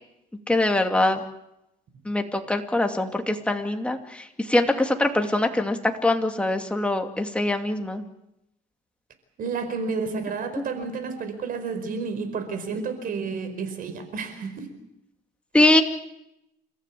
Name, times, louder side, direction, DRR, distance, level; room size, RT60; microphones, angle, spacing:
voice 1, 0.5-1.2 2.1-8.0 15.5-15.8, left 2 dB, 5° left, 4 dB, 2.6 m, -23 dB
voice 2, 9.4-14.7, right 5 dB, 55° right, 9 dB, 4.8 m, -31 dB
29.5 x 14.5 x 8.6 m, 0.85 s
cardioid pair, 110°, 17 cm